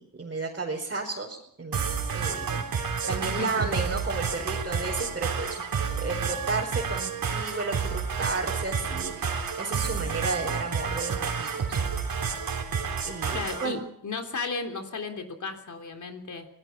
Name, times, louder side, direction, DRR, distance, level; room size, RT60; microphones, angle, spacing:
voice 1, 0.0-1.9 2.1-5.6 5.9-11.8 13.0-13.8, right 3 dB, 30° right, -2 dB, 4.9 m, -33 dB
sound 1, 1.7-13.7, right 6 dB, 60° right, 4.0 m, -30 dB
voice 2, 3.2-3.7 13.3-16.5, left 4 dB, 45° left, 5 dB, 3.6 m, -35 dB
26.5 x 19.0 x 5.8 m, 0.67 s
cardioid pair, 85°, 40 cm